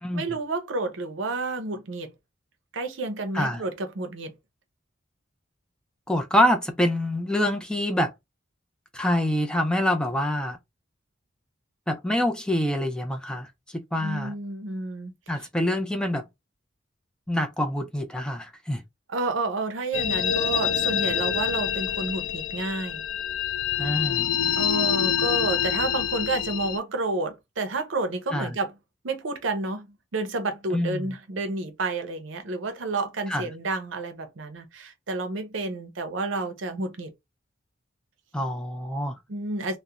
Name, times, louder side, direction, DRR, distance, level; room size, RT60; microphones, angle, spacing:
voice 1, 0.1-2.1 2.7-4.3 14.0-15.1 19.1-23.1 24.6-28.7 29.0-37.1 39.3-39.8, right 2 dB, 75° right, 0.6 m, -30 dB
voice 2, 6.1-8.1 8.9-10.6 11.9-13.5 13.7-14.3 15.3-16.3 17.3-18.8 23.8-24.3 28.3-28.5 30.7-31.1 33.3-33.5 38.3-39.2, left 1 dB, 5° left, 0.3 m, -26 dB
sound 1, 19.9-26.8, left 9 dB, 85° left, 0.4 m, -26 dB
2.4 x 2.1 x 2.8 m
head